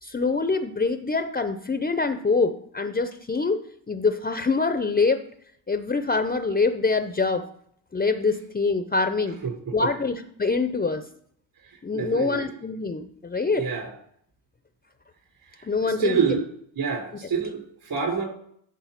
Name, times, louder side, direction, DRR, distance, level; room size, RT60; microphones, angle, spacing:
voice 1, 0.0-3.6 3.9-5.2 5.7-7.5 7.9-9.4 9.7-11.0 11.8-13.6 15.6-16.4, left 4 dB, 20° left, 9 dB, 0.7 m, -25 dB
voice 2, 9.4-9.9 11.9-12.5 13.6-13.9 15.8-16.4 16.8-18.2, right 6 dB, 50° right, 2 dB, 4.2 m, -27 dB
10.5 x 3.8 x 5.9 m, 0.66 s
supercardioid pair, 65°, 46 cm